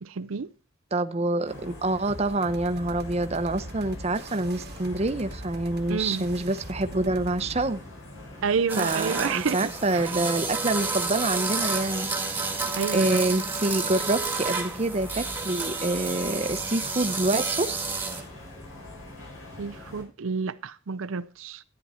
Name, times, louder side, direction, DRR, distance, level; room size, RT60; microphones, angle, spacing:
voice 1, 0.0-0.5 5.9-6.3 8.4-9.6 9.9-10.1 12.8-13.3 19.6-21.6, right 5 dB, 80° right, 0.6 m, -29 dB
voice 2, 0.9-7.8 8.8-12.1 12.9-17.9, right 2 dB, 30° right, 0.8 m, -27 dB
sound 1, 1.4-20.0, left 1 dB, 80° left, 5.8 m, -44 dB
sound 2, 2.1-7.7, right 1 dB, 50° right, 1.2 m, -41 dB
sound 3, 8.7-18.2, right 4 dB, 10° right, 1.7 m, -30 dB
13.0 x 9.6 x 4.3 m
head